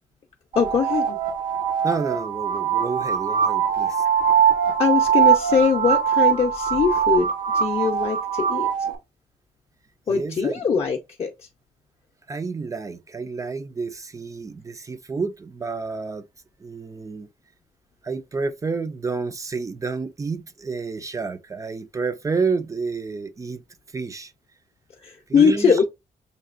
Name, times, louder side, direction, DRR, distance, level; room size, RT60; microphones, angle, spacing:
sound 1, 0.5-9.0, right 8 dB, 80° right, 1.2 m, -22 dB
voice 1, 0.6-1.2 4.8-8.7 10.1-11.3 25.0-25.8, left 6 dB, 45° left, 0.6 m, -22 dB
voice 2, 1.8-4.0 10.1-10.5 12.3-16.2 16.6-17.3 18.0-23.6 23.9-24.3 25.3-25.8, right 4 dB, 20° right, 0.4 m, -29 dB
6.6 x 2.8 x 2.4 m
wide cardioid pair, 170°, 14 cm